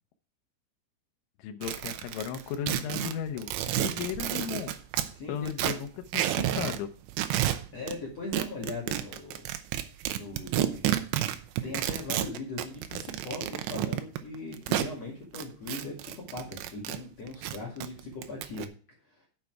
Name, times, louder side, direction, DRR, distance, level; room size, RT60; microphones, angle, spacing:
voice 1, 1.4-4.7 5.3-6.9, left 8 dB, 80° left, 6 dB, 3.1 m, -35 dB
sound 1, 1.6-5.1 5.5-6.8 7.1-8.0 8.3-14.9 15.3-17.0 17.3-18.7, right 13 dB, 80° right, 2.6 m, -30 dB
voice 2, 5.1-5.5 7.7-9.4 10.1-10.8 11.6-18.7 19.0-19.3, left 2 dB, 45° left, -2 dB, 2.6 m, -39 dB
10.0 x 7.0 x 4.7 m, 0.40 s
omnidirectional pair, 5.9 m